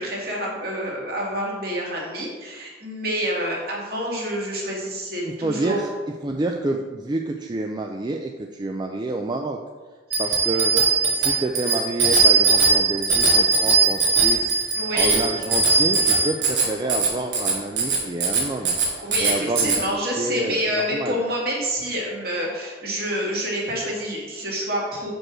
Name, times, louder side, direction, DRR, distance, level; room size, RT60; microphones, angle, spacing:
voice 1, 0.0-5.8 11.2-11.4 14.3-14.4 14.7-15.2 19.0-25.1, equal, 55° right, -3 dB, 2.1 m, -28 dB
voice 2, 5.3-5.9 6.2-9.6 10.2-14.5 14.9-18.7 19.2-21.2, right 2 dB, 25° right, 2 dB, 0.4 m, -28 dB
Bicycle bell, 10.1-19.8, right 4 dB, 80° right, 1.9 m, -20 dB
6.3 x 5.2 x 6.0 m, 1.4 s
head